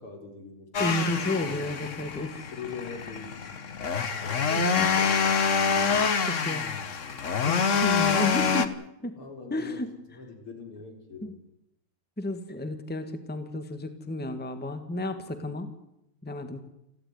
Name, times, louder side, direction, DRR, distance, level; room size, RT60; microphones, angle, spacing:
voice 1, 0.0-1.3 2.4-3.5 4.1-5.3 9.2-11.4, left 5 dB, 80° left, 4 dB, 5.0 m, -42 dB
sound 1, 0.7-8.7, left 6 dB, 40° left, 1.4 m, -26 dB
voice 2, 0.8-2.5 4.6-4.9 6.2-6.7 7.4-8.7 9.0-9.2 9.5-9.9 11.2-11.3 12.2-15.7 16.2-16.6, left 1 dB, 5° left, 9 dB, 1.7 m, -32 dB
29.0 x 12.0 x 9.6 m, 0.83 s
omnidirectional pair, 2.4 m